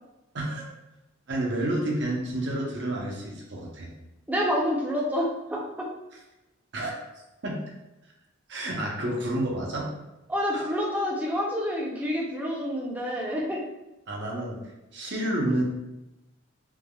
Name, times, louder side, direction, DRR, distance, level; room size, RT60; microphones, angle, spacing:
voice 1, 0.3-0.7 1.3-3.9 6.7-7.0 7.4-7.6 8.5-9.9 10.5-10.7 14.1-14.6 14.9-15.6, right 1 dB, 60° right, -2 dB, 0.7 m, -29 dB
voice 2, 4.3-5.9 10.3-13.6, equal, 10° right, -4 dB, 0.5 m, -28 dB
3.3 x 2.2 x 2.2 m, 0.96 s
head